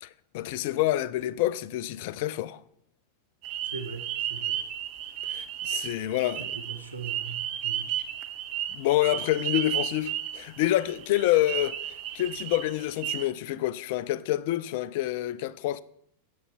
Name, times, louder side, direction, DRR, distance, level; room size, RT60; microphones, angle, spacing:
voice 1, 0.0-2.6 5.3-6.5 8.7-11.8 12.1-15.8, left 14 dB, 50° left, 0.4 m, -27 dB
sound 1, 3.4-13.2, right 11 dB, 40° right, 0.8 m, -33 dB
voice 2, 3.6-4.6 5.0-5.2 5.9-6.1 6.4-7.9, right 5 dB, 80° right, 1.1 m, -40 dB
9.5 x 7.1 x 3.6 m
figure-of-eight pair, 90°, 0 cm